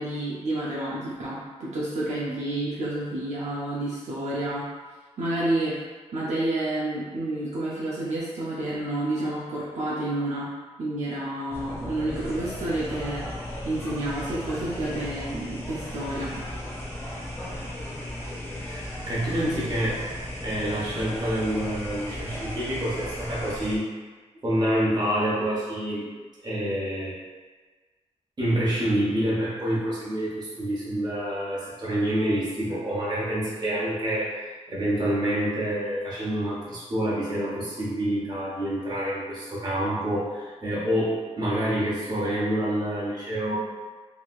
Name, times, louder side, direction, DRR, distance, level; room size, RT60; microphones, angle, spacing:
voice 1, 0.0-4.6 5.2-5.7 6.1-10.5 10.8-13.2 13.6-16.4, right 1 dB, 70° right, -7 dB, 0.6 m, -29 dB
sound 1, 11.5-23.8, left 1 dB, 20° left, 0.5 m, -36 dB
voice 2, 18.6-20.0 20.4-23.9 24.4-26.1 26.4-27.2 28.4-34.3 34.7-43.5, right 1 dB, 35° right, -8 dB, 1.1 m, -27 dB
3.2 x 2.8 x 2.4 m, 1.4 s
wide cardioid pair, 140°, 12 cm